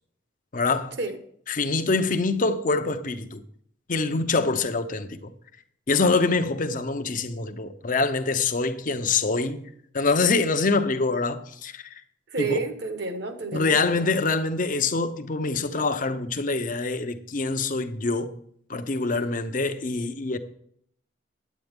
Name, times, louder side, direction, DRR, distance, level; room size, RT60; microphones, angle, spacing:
voice 1, 0.5-1.0 1.5-3.4 3.9-5.3 5.9-9.7 9.9-11.8 12.4-12.6 13.5-18.3 18.7-20.4, left 3 dB, 45° left, 0.7 m, -25 dB
voice 2, 12.3-13.9, right 3 dB, 60° right, 1.1 m, -30 dB
9.2 x 8.9 x 3.5 m
head